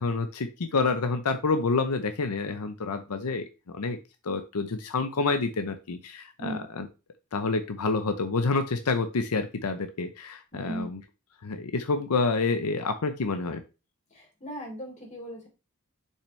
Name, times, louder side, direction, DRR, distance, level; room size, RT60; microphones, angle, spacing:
voice 1, 0.0-4.0 4.2-6.9 7.3-11.0 11.4-13.6, left 3 dB, 90° left, 8 dB, 0.7 m, -28 dB
voice 2, 10.5-10.9 14.1-15.5, right 1 dB, 35° left, -1 dB, 3.3 m, -37 dB
6.9 x 5.5 x 3.2 m, 0.29 s
head